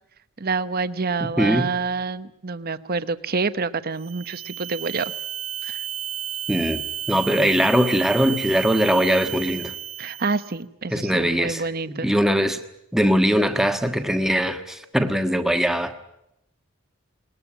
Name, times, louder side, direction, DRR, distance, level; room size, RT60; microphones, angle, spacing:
voice 1, 0.4-5.1 5.6-5.8 10.0-12.1, right 4 dB, 45° right, 0.9 m, -27 dB
voice 2, 1.2-1.7 6.5-9.7 10.9-11.6 12.0-12.6 12.9-16.0, equal, ahead, 1.4 m, -21 dB
sound 1, 4.0-10.6, right 11 dB, 70° right, 1.5 m, -32 dB
21.0 x 20.5 x 10.0 m
head